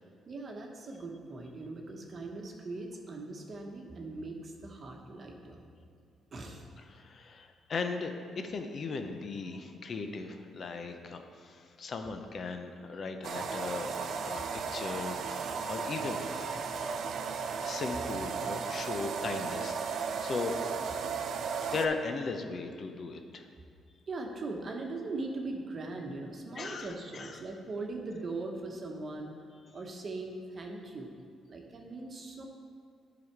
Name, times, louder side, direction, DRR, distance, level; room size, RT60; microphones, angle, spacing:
voice 1, 0.3-5.7 6.3-6.6 9.5-9.6 24.1-29.3 29.7-31.1 31.5-32.4, right 2 dB, 45° right, 2 dB, 1.1 m, -40 dB
voice 2, 6.9-13.9 14.2-14.4 14.7-16.6 17.4-20.5 21.7-23.5 26.6-27.4, left 4 dB, 50° left, 6 dB, 0.6 m, -38 dB
sound 1, 13.2-21.9, right 5 dB, 65° right, 0.4 m, -35 dB
10.5 x 4.1 x 4.6 m, 2.2 s
cardioid pair, 90°, 0 cm